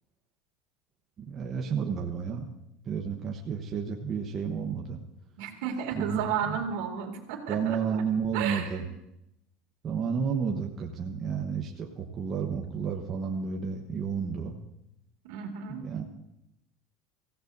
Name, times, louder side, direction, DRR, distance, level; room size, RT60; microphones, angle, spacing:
voice 1, 1.2-2.5 2.9-5.0 5.9-6.2 6.5-6.6 7.5-8.8 9.8-14.5 15.7-16.1, right 6 dB, 25° right, 1 dB, 1.0 m, -31 dB
voice 2, 5.4-8.0 8.3-8.8 15.2-15.9, right 7 dB, 70° right, 3 dB, 2.4 m, -33 dB
24.5 x 16.0 x 2.6 m, 0.84 s
cardioid pair, 170°, 0 cm